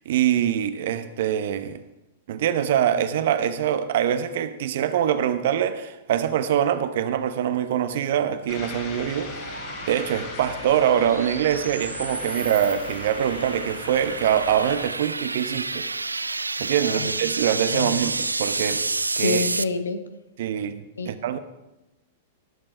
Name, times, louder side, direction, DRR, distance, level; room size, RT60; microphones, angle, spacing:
voice 1, 0.1-1.8 2.3-9.6 9.9-15.9 16.6-18.8 19.2-19.4 20.4-21.4, right 10 dB, 55° right, 11 dB, 0.9 m, -24 dB
sound 1, 8.1-19.6, right 3 dB, 85° right, 0.3 m, -30 dB
sound 2, 8.5-14.9, left 4 dB, 50° left, 3.1 m, -39 dB
voice 2, 16.8-17.1 17.7-18.0 19.2-20.0 21.0-21.1, left 4 dB, 75° left, 9 dB, 1.1 m, -27 dB
18.5 x 7.6 x 4.5 m, 0.98 s
figure-of-eight pair, 100°, 0 cm